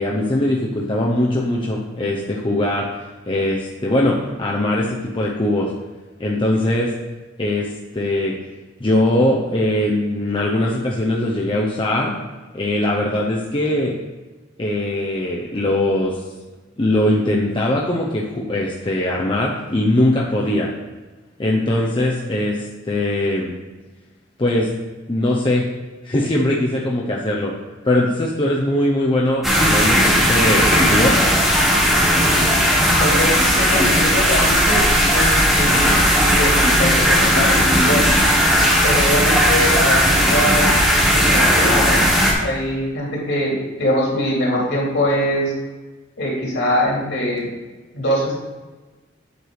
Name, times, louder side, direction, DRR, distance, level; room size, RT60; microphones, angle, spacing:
voice 1, 0.0-2.9 3.3-5.7 6.2-6.9 7.4-8.4 8.8-12.1 12.5-13.9 14.6-16.2 16.8-20.7 21.4-22.6 22.8-23.5 24.4-24.7 25.1-25.7 26.0-27.5 27.8-30.0 30.3-31.2, left 1 dB, 25° left, -3 dB, 0.7 m, -20 dB
sound 1, 29.4-42.3, equal, ahead, 1.4 m, -16 dB
voice 2, 33.0-38.1 38.8-40.7 41.0-42.0 42.4-45.5 46.2-47.5 47.9-48.3, equal, 60° left, -4 dB, 2.7 m, -22 dB
8.1 x 4.6 x 4.8 m, 1.3 s
head